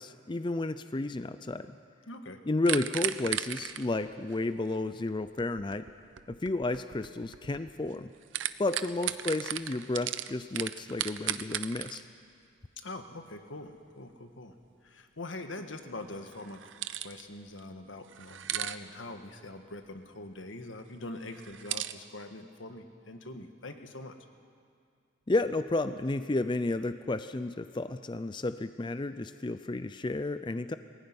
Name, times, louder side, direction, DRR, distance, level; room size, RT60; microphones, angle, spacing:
voice 1, 0.0-1.7 2.5-5.9 6.3-8.1 8.6-12.0 25.3-30.8, left 2 dB, 25° left, 11 dB, 0.5 m, -32 dB
voice 2, 2.1-2.4 12.8-14.5 14.8-16.6 17.0-24.1, left 2 dB, 85° left, 6 dB, 1.6 m, -43 dB
sound 1, 2.7-8.0 8.2-12.0 16.3-17.2 17.6-17.7 18.1-18.8 21.3-21.9, right 11 dB, 80° right, 0.7 m, -36 dB
20.5 x 16.0 x 9.6 m, 2.3 s
head